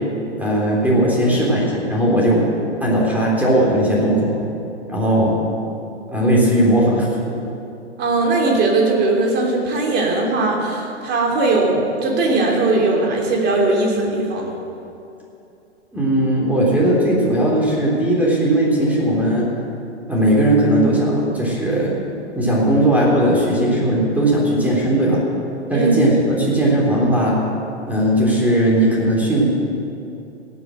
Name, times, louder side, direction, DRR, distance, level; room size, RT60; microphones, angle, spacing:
voice 1, 0.4-2.5 2.8-4.4 4.9-5.4 6.1-7.1 15.9-19.5 20.1-21.9 22.3-25.2 25.7-27.4 27.9-29.4, right 1 dB, 5° right, -4 dB, 3.4 m, -17 dB
voice 2, 8.0-14.5 25.7-26.0, right 2 dB, 30° right, -1 dB, 3.2 m, -19 dB
17.0 x 8.4 x 7.7 m, 2.7 s
figure-of-eight pair, 110°, 35 cm